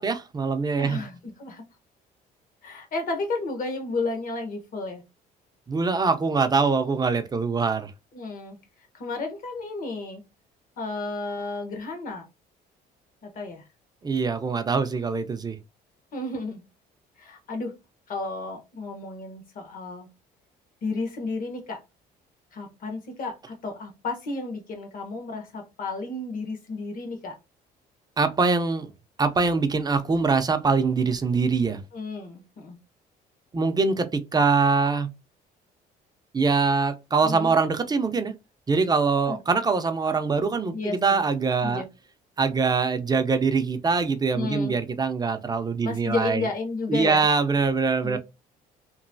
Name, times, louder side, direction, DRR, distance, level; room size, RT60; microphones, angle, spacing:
voice 1, 0.0-1.0 5.7-7.9 14.0-15.6 28.2-28.9 29.2-31.8 33.5-35.1 36.3-38.3 38.7-41.8 42.4-46.5 46.9-48.2, right 4 dB, 25° right, 0.5 m, -23 dB
voice 2, 0.8-1.6 2.6-5.0 8.1-8.6 8.9-10.2 10.8-12.2 13.2-13.6 16.1-16.6 17.2-17.7 18.1-20.1 20.8-21.8 22.5-27.4 31.9-32.8 37.2-37.5 39.3-39.4 40.7-41.2 41.6-41.9 44.3-44.8 45.8-47.3 48.0-48.2, left 3 dB, 55° left, 1.2 m, -32 dB
3.0 x 2.6 x 2.6 m
cardioid pair, 110°, 17 cm